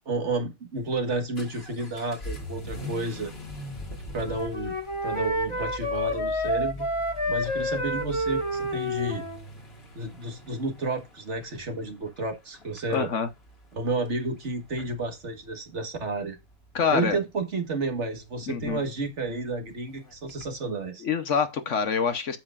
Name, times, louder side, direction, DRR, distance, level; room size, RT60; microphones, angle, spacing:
voice 1, 0.1-3.3 4.1-4.8 5.0-6.9 7.3-9.3 10.0-13.1 13.7-16.4 16.9-21.0, right 3 dB, 50° right, 1.8 m, -31 dB
Vehicle / Accelerating revving vroom, 0.8-20.6, left 1 dB, 45° left, 2.4 m, -44 dB
Wind instrument woodwind instrument, 4.1-9.4, left 1 dB, 20° left, 1.5 m, -29 dB
voice 2, 12.9-13.3 16.7-17.2 18.5-18.8 21.0-22.4, left 6 dB, 60° left, 1.2 m, -26 dB
8.9 x 7.8 x 2.4 m
omnidirectional pair, 1.5 m